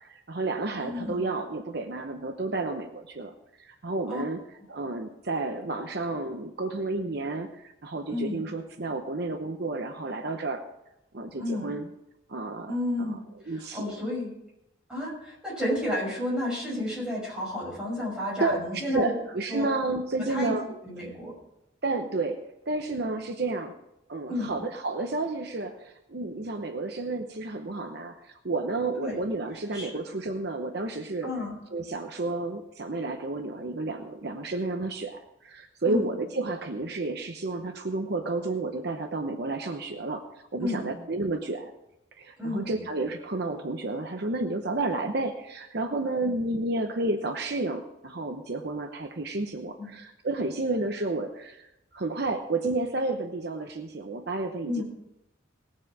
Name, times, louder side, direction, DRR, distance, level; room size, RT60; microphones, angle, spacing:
voice 1, 0.0-4.4 4.7-10.6 11.1-11.9 12.3-13.2 13.5-14.0 18.4-18.6 18.9-20.7 21.8-23.8 24.1-28.2 28.4-31.3 31.7-41.7 42.2-51.7 51.9-54.8, right 2 dB, 55° right, 6 dB, 0.8 m, -31 dB
voice 2, 0.8-1.3 4.1-4.2 8.1-8.4 11.4-11.7 12.7-13.2 13.5-14.3 14.9-19.1 19.5-19.7 20.3-20.5 20.8-21.3 24.3-24.5 29.0-29.2 29.7-30.0 31.2-31.6 35.8-36.1 40.6-40.9 42.4-42.8 46.1-46.3 49.8-49.9 54.6-54.8, left 1 dB, 5° right, -6 dB, 6.1 m, -31 dB
19.0 x 7.5 x 4.8 m, 0.89 s
head